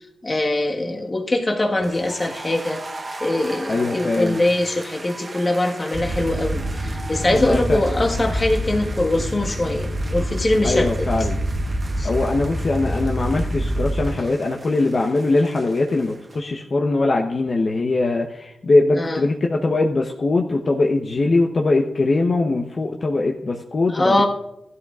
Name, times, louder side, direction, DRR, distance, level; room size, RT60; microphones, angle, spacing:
voice 1, 0.2-2.8 3.2-11.1 12.0-12.1 18.9-19.2 23.9-24.2, left 1 dB, 30° left, 1 dB, 1.5 m, -22 dB
sound 1, 1.8-16.4, right 2 dB, 35° right, 1.1 m, -39 dB
voice 2, 3.7-4.4 7.3-7.8 10.6-11.4 12.0-24.2, left 2 dB, 45° left, 1 dB, 1.0 m, -21 dB
sound 2, 5.9-14.1, equal, 20° right, 1.9 m, -26 dB
16.5 x 12.5 x 2.5 m, 0.84 s
cardioid pair, 90°, 0 cm